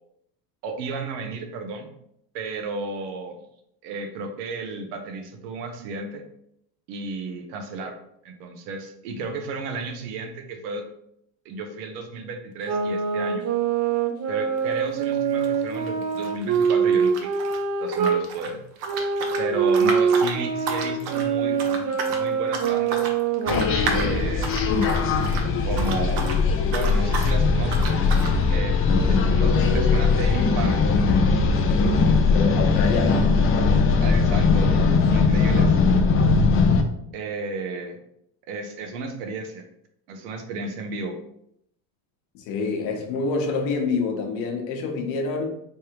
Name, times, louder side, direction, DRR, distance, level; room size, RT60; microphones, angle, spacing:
voice 1, 0.6-1.9 2.3-3.4 3.8-6.2 6.9-8.0 8.2-10.9 11.4-13.4 14.3-17.3 17.8-18.6 19.4-23.0 23.9-24.5 25.7-27.8 28.5-28.8 29.1-30.8 34.0-34.8 35.1-35.8 37.1-38.0 38.5-39.6 40.1-41.2, right 3 dB, 85° right, 0.9 m, -33 dB
sound 1, 12.6-18.2 18.8-24.3, right 6 dB, 35° right, 0.5 m, -24 dB
sound 2, 14.6-14.8 15.0-17.6 17.9-26.4 26.7-27.4 27.7-28.4, right 4 dB, 55° right, 0.8 m, -32 dB
sound 3, 23.5-36.8, left 4 dB, 30° left, 0.4 m, -20 dB
voice 2, 31.7-33.2 42.3-45.5, left 4 dB, 75° left, 1.0 m, -27 dB
3.3 x 3.3 x 3.0 m
cardioid pair, 115°, 47 cm